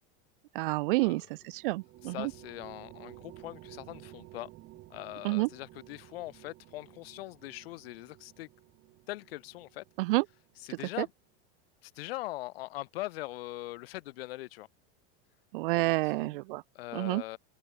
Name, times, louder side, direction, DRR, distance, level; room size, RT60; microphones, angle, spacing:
voice 1, 0.5-2.3 5.2-5.5 10.0-10.2 11.0-11.1 15.5-16.6 16.9-17.2, right 23 dB, 60° right, 0.5 m, -29 dB
sound 1, 1.2-10.9, right 18 dB, 35° right, 3.3 m, -54 dB
voice 2, 2.0-4.5 4.9-8.5 9.1-9.8 10.6-11.1 11.8-14.7 15.7-16.4 16.8-17.4, left 18 dB, 70° left, 7.1 m, -41 dB
open air
supercardioid pair, 175°, 30 cm